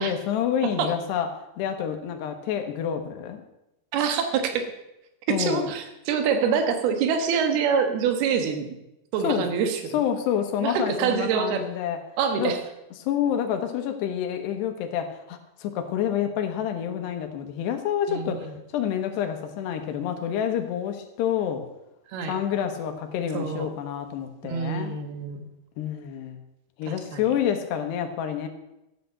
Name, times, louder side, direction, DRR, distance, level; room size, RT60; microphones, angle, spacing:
voice 1, 0.0-3.4 5.3-5.7 9.2-9.5 9.9-12.0 12.4-12.5 13.0-21.6 22.3-24.9 25.8-26.4 26.8-28.5, left 9 dB, 85° left, 6 dB, 3.3 m, -28 dB
voice 2, 3.9-4.7 5.3-8.8 9.1-10.0 10.6-11.6 12.2-12.6 18.1-18.6 22.1-22.4 23.3-23.7 24.4-25.5 26.9-27.3, right 6 dB, 70° right, 6 dB, 3.2 m, -26 dB
13.5 x 8.5 x 6.7 m, 0.90 s
omnidirectional pair, 4.8 m